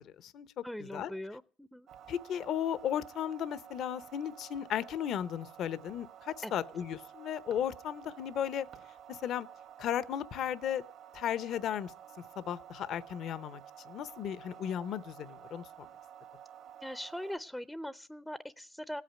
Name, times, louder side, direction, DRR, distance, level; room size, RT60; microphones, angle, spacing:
voice 1, 0.0-0.5 0.9-1.1 2.1-8.7 9.1-9.5 9.8-10.8 11.1-11.9 12.4-13.6 13.9-15.6, left 9 dB, 65° left, 16 dB, 0.9 m, -35 dB
voice 2, 0.6-1.9 6.4-6.5 16.8-19.0, left 1 dB, 5° left, 15 dB, 0.6 m, -41 dB
sound 1, 1.9-17.4, right 9 dB, 65° right, 1.8 m, -52 dB
16.5 x 8.5 x 9.0 m, 0.42 s
supercardioid pair, 80°, 0 cm